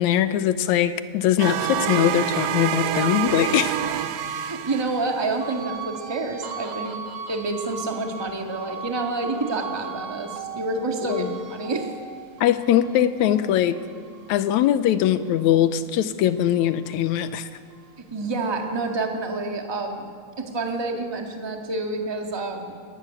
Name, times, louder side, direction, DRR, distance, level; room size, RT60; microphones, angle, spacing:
voice 1, 0.0-3.8 11.0-11.3 12.4-13.8 14.3-17.5, left 11 dB, 85° left, 12 dB, 2.1 m, -21 dB
sound 1, 1.4-5.3, right 11 dB, 75° right, 2.0 m, -27 dB
sound 2, 3.3-15.9 16.3-18.0, right 6 dB, 45° right, 1.8 m, -39 dB
voice 2, 4.4-7.0 7.3-11.9 18.0-20.1 20.4-22.8, right 3 dB, 15° right, 2 dB, 1.1 m, -28 dB
23.0 x 12.5 x 9.5 m, 2.1 s
omnidirectional pair, 3.3 m